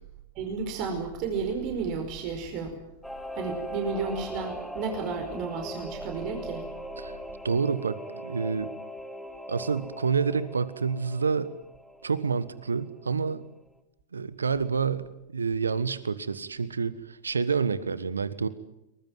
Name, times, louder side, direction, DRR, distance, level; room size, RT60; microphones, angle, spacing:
voice 1, 0.3-2.8 3.3-6.7, right 5 dB, 45° right, 4 dB, 4.9 m, -32 dB
Singing / Musical instrument, 3.0-13.1 13.4-13.5, equal, ahead, 2.2 m, -40 dB
voice 2, 7.4-8.7 9.5-11.5 12.0-13.4 14.1-18.5, right 5 dB, 85° right, 15 dB, 1.3 m, -28 dB
23.5 x 21.0 x 9.3 m, 0.87 s
figure-of-eight pair, 100°, 0 cm